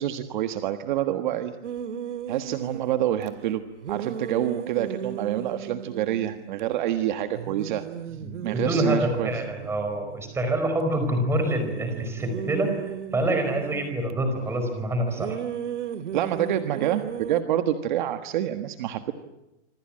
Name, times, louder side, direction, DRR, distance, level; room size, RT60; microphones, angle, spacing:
voice 1, 0.0-1.5 2.3-3.6 3.9-7.8 8.4-9.3 16.1-19.1, right 12 dB, 40° right, 8 dB, 1.5 m, -27 dB
sound 1, 1.6-3.3 3.8-6.7 7.0-7.1 7.3-10.8 11.3-14.1 15.1-17.4, right 8 dB, 80° right, 2.0 m, -35 dB
voice 2, 8.2-15.4, right 1 dB, 5° right, 5 dB, 4.9 m, -26 dB
26.0 x 26.0 x 8.8 m, 0.93 s
supercardioid pair, 175°, 35 cm